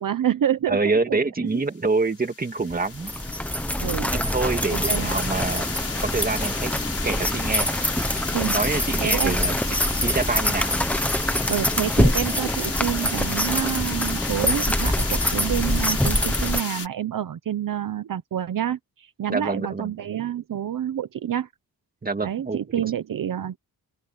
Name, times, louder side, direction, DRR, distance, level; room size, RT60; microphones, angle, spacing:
voice 1, 0.0-1.2 1.4-1.6 3.8-4.1 4.7-5.1 8.3-8.6 9.0-9.4 11.5-21.5 22.2-23.6, right 10 dB, 60° right, 0.9 m, -28 dB
voice 2, 0.7-3.1 4.1-5.7 6.0-6.7 7.0-7.7 8.4-10.7 19.3-19.9 22.0-22.6, right 3 dB, 25° right, 2.0 m, -26 dB
sound 1, 1.9-16.9, left 5 dB, 40° left, 5.4 m, -33 dB
sound 2, 2.9-16.6, left 1 dB, 5° left, 1.0 m, -24 dB
open air
wide cardioid pair, 155°, 37 cm